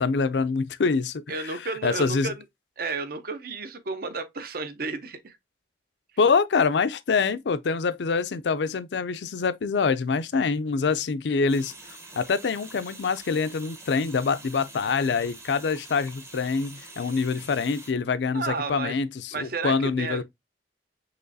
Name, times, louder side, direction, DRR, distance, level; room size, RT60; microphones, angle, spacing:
voice 1, 0.0-2.3 6.2-11.7 12.2-20.2, left 5 dB, 75° left, 0.5 m, -25 dB
voice 2, 1.3-2.4 2.8-5.4 18.3-19.0 19.3-20.2, right 4 dB, 55° right, 0.7 m, -32 dB
sound 1, 11.5-17.9, right 2 dB, 15° right, 0.7 m, -46 dB
5.9 x 3.0 x 2.7 m
head